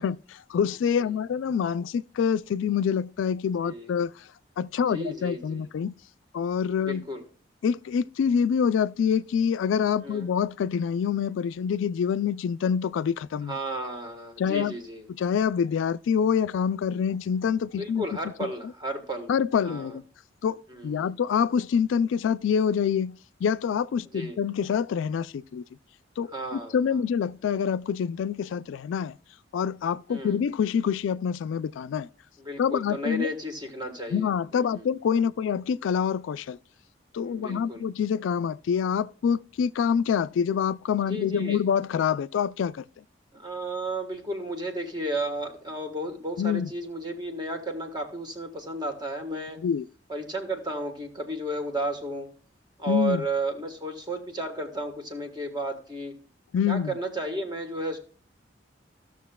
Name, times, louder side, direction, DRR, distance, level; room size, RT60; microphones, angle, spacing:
voice 1, 0.0-4.1 4.6-5.9 6.3-7.0 7.6-13.6 14.4-14.8 15.1-18.1 18.4-18.5 19.3-20.0 20.4-25.6 26.2-29.2 29.5-32.1 32.6-33.3 34.1-36.6 37.1-43.0 46.4-46.7 49.6-49.8 52.9-53.2 56.5-56.9, left 7 dB, 80° left, 0.3 m, -26 dB
voice 2, 4.9-5.6 6.8-7.2 10.0-10.3 13.5-15.1 17.8-19.3 19.6-20.0 20.7-21.1 24.1-24.4 26.3-26.7 30.1-30.4 32.4-34.3 34.5-34.9 37.2-37.9 41.1-41.6 43.3-49.6 50.1-52.3 52.8-56.1 56.7-58.0, right 1 dB, 20° right, 1.3 m, -33 dB
15.5 x 6.4 x 2.2 m
head